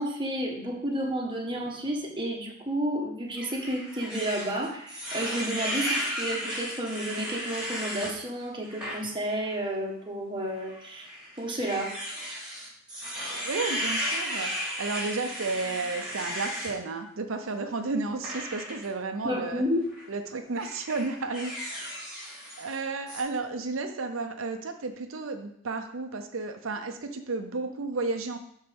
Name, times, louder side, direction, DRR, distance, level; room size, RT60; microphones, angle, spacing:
voice 1, 0.0-11.1 11.4-11.9 19.2-19.8, right 1 dB, 25° right, -1 dB, 1.3 m, -31 dB
sound 1, 3.4-8.1 8.6-9.0 9.4-9.6 10.6-16.7 18.2-18.9 19.8-20.1 20.5-22.8 23.1-23.2, equal, 5° right, 3.0 m, -34 dB
voice 2, 13.4-14.5 14.8-19.6 20.1-21.9 22.3-28.4, right 3 dB, 80° right, 6 dB, 0.7 m, -32 dB
11.0 x 4.4 x 3.5 m, 0.70 s
head